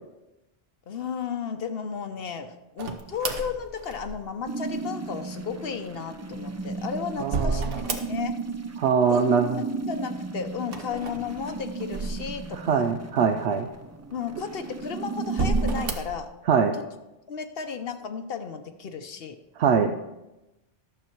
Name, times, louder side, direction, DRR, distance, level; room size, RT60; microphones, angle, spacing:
voice 1, 0.9-7.6 8.0-8.4 9.1-9.3 9.6-12.9 14.1-16.3 16.7-16.8 17.3-19.4, left 6 dB, 65° left, 8 dB, 1.0 m, -34 dB
sound 1, 2.8-4.4 6.3-8.5 8.8-9.5 10.6-12.7 13.3-13.4 14.2-14.8 15.3-16.2, right 3 dB, 60° right, 1.1 m, -31 dB
sound 2, 4.5-15.9, right 4 dB, 25° right, 0.3 m, -35 dB
voice 2, 7.2-7.7 8.8-9.5 12.6-13.7 16.5-16.7 19.6-19.9, right 6 dB, 85° right, 5 dB, 0.9 m, -22 dB
12.0 x 6.8 x 4.5 m, 0.97 s
omnidirectional pair, 1.1 m